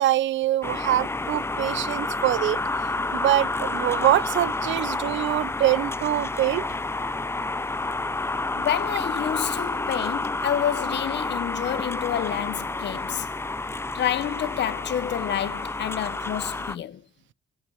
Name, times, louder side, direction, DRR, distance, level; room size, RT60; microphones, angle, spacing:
voice 1, 0.0-2.6 3.1-6.8, right 14 dB, 70° right, 0.6 m, -24 dB
sound 1, 0.6-16.8, left 2 dB, 10° left, 0.6 m, -29 dB
voice 2, 8.5-13.3 13.9-17.0, left 10 dB, 60° left, 0.9 m, -28 dB
17.0 x 5.7 x 4.8 m
cardioid pair, 90°, 20 cm